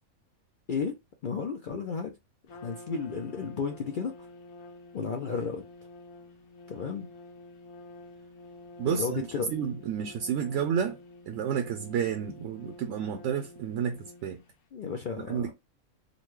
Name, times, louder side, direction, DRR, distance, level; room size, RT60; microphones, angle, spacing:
voice 1, 1.2-2.1 2.5-4.3 4.9-5.6 6.7-7.1 8.8-9.5 14.7-15.5, left 5 dB, 65° left, 0.5 m, -33 dB
Trumpet, 2.5-14.6, left 2 dB, 85° left, 1.2 m, -49 dB
voice 2, 8.8-11.0 11.3-14.4 15.2-15.5, right 8 dB, 65° right, 0.8 m, -31 dB
3.9 x 2.2 x 3.0 m
omnidirectional pair, 1.4 m